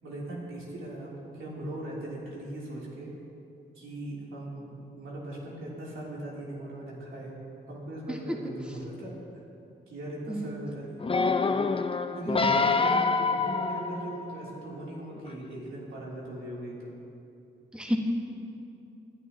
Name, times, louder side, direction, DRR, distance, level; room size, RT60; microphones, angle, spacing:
voice 1, 0.0-3.1 3.7-7.3 7.7-9.2 9.9-11.7 12.1-16.9, right 1 dB, 90° right, -6 dB, 3.3 m, -39 dB
voice 2, 10.3-10.6 12.3-12.6 17.7-18.0, equal, 5° right, 0 dB, 1.5 m, -31 dB
sound 1, 11.0-14.5 15.2-15.3, left 4 dB, 25° left, 0.5 m, -26 dB
20.5 x 11.0 x 3.0 m, 2.8 s
cardioid pair, 75°, 20 cm